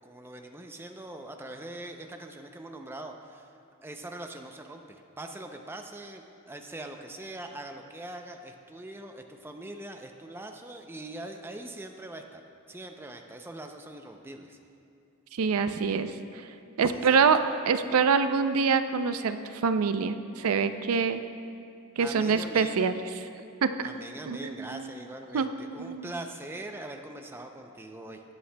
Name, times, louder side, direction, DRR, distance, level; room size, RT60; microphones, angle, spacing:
voice 1, 0.0-3.5 3.8-12.4 12.7-14.6 16.9-17.3 22.0-22.8 23.8-28.2, right 1 dB, 10° right, 4 dB, 0.4 m, -42 dB
voice 2, 15.3-16.4 16.8-17.4 17.7-19.4 19.6-21.2 22.0-22.9 23.6-23.7 24.3-24.9 25.3-25.5 25.8-26.1, right 5 dB, 80° right, 10 dB, 0.4 m, -25 dB
18.5 x 8.4 x 2.2 m, 2.6 s
head